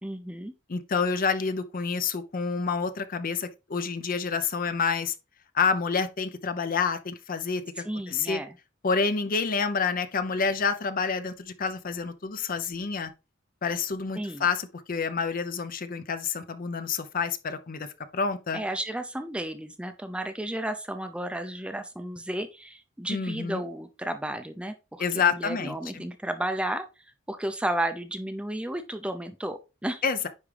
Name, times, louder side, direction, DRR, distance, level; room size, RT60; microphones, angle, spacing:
voice 1, 0.0-0.5 7.8-8.5 14.2-14.5 18.5-26.9 27.3-30.0, right 1 dB, 5° right, 0.5 m, -33 dB
voice 2, 0.7-5.2 5.5-8.4 8.8-13.1 13.6-17.9 18.1-18.6 23.1-23.6 25.0-26.1 30.0-30.3, left 5 dB, 45° left, 0.6 m, -28 dB
9.7 x 3.6 x 3.3 m
head